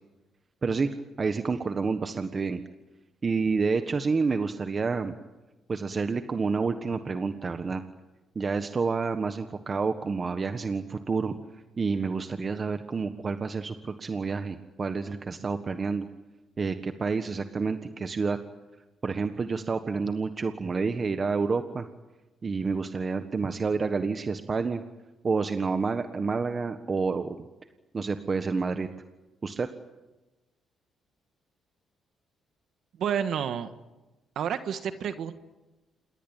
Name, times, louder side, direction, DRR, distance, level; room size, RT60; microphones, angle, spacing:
voice 1, 1.2-2.6 3.2-5.2 5.7-7.8 8.3-11.4 11.8-16.1 16.6-18.4 19.0-21.9 22.4-24.8 25.2-27.4 27.9-28.9 29.4-29.7, right 4 dB, 35° right, 8 dB, 1.5 m, -29 dB
voice 2, 33.0-33.7 34.3-35.3, right 8 dB, 70° right, 9 dB, 1.6 m, -29 dB
28.0 x 21.0 x 9.0 m, 1.1 s
cardioid pair, 90°, 0 cm